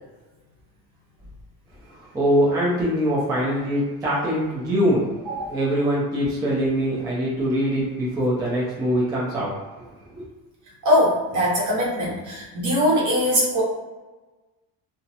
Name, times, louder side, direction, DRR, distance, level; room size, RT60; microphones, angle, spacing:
voice 1, 2.1-5.1 5.5-9.5 10.1-10.2, equal, 10° right, -6 dB, 0.3 m, -23 dB
voice 2, 10.8-13.6, equal, 55° right, -5 dB, 0.9 m, -21 dB
2.3 x 2.0 x 2.7 m, 1.2 s
cardioid pair, 150°, 37 cm